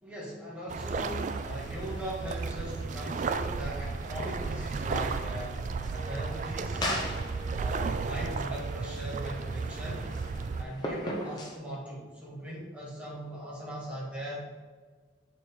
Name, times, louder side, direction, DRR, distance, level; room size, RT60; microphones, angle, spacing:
voice 1, 0.0-5.6 5.9-6.9 7.5-10.1 10.5-14.7, equal, 5° right, -6 dB, 1.7 m, -40 dB
sound 1, 0.7-10.6, right 4 dB, 40° right, 0.3 m, -34 dB
sound 2, 1.0-11.6, left 1 dB, 20° left, 0.9 m, -41 dB
Wind instrument woodwind instrument, 5.9-11.8, right 3 dB, 70° left, 1.2 m, -48 dB
6.5 x 4.3 x 3.6 m, 1.4 s
head